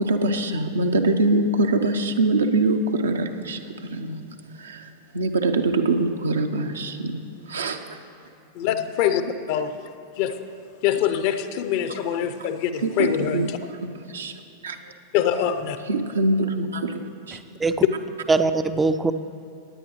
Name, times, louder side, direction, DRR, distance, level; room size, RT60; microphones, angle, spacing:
voice 1, 0.0-3.6 3.9-4.2 4.6-4.9 5.1-8.0 12.8-13.1 13.3-13.5 13.8-14.8 15.9-17.0 17.3-17.4, right 2 dB, 70° right, 6 dB, 0.7 m, -23 dB
voice 2, 8.5-9.2 9.5-9.8 10.2-10.4 10.8-13.6 15.1-15.8, left 10 dB, 45° left, 10 dB, 0.6 m, -24 dB
voice 3, 17.3-17.7 18.3-19.1, right 3 dB, 10° right, 11 dB, 0.4 m, -22 dB
17.0 x 9.9 x 3.1 m, 2.8 s
figure-of-eight pair, 90°, 0 cm